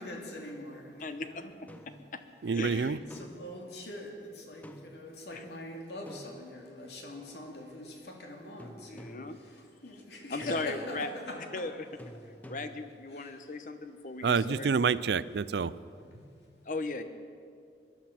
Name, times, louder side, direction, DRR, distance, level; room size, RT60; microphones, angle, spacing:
voice 1, 0.0-1.5 3.1-9.1 9.8-11.4 13.1-13.4 16.1-16.3, left 2 dB, 70° left, 1 dB, 2.4 m, -43 dB
voice 2, 1.0-1.7 2.5-3.2 5.3-5.4 8.9-9.4 10.3-11.1 11.5-11.9 12.5-14.7 16.6-17.0, left 3 dB, 45° left, 9 dB, 0.9 m, -37 dB
sound 1, 1.7-2.1 3.1-3.6 4.6-5.1 6.1-6.9 8.6-9.4 10.4-11.0 12.0-13.0, equal, 10° left, 0.5 m, -49 dB
voice 3, 2.4-3.0 14.2-15.7, right 5 dB, 70° right, 17 dB, 0.4 m, -28 dB
19.5 x 12.0 x 5.9 m, 2.3 s
head